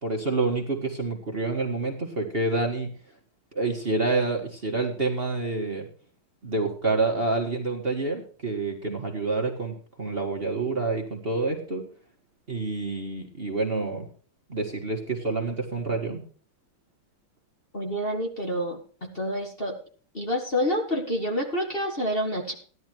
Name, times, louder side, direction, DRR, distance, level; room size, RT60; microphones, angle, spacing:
voice 1, 0.0-2.9 3.5-5.9 6.4-11.9 12.5-14.1 14.5-16.2, right 3 dB, 30° right, 1 dB, 2.0 m, -28 dB
voice 2, 17.7-18.8 19.1-19.7 20.1-22.5, equal, 25° left, 1 dB, 2.2 m, -28 dB
16.0 x 11.5 x 3.1 m, 0.42 s
omnidirectional pair, 2.3 m